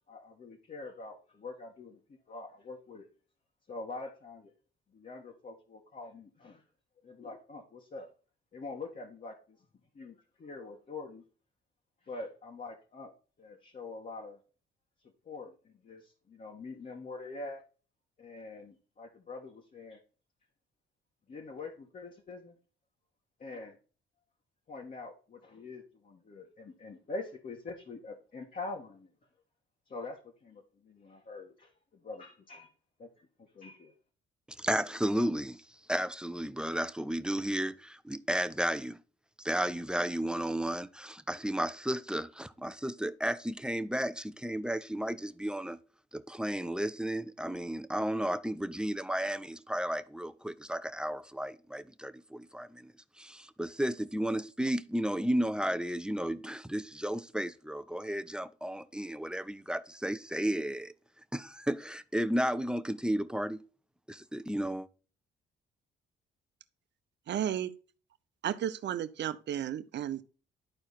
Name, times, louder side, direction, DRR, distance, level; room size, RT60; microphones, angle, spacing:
voice 1, 0.1-3.1 3.7-4.5 4.9-6.6 7.0-8.1 8.5-9.6 9.9-11.2 12.0-13.1 13.4-14.4 15.0-17.6 18.2-20.0 21.3-22.6 23.4-23.8 24.7-29.1 29.9-32.7 33.0-33.9, left 3 dB, 40° left, 1.9 m, -45 dB
voice 2, 34.6-35.6 35.9-39.0 39.4-45.8 46.1-52.9 53.2-60.9 61.3-63.6 64.1-64.9, right 1 dB, 5° right, 0.6 m, -33 dB
voice 3, 67.3-67.7 68.4-70.2, right 10 dB, 60° right, 0.9 m, -33 dB
11.5 x 4.6 x 4.2 m
cardioid pair, 90°, 20 cm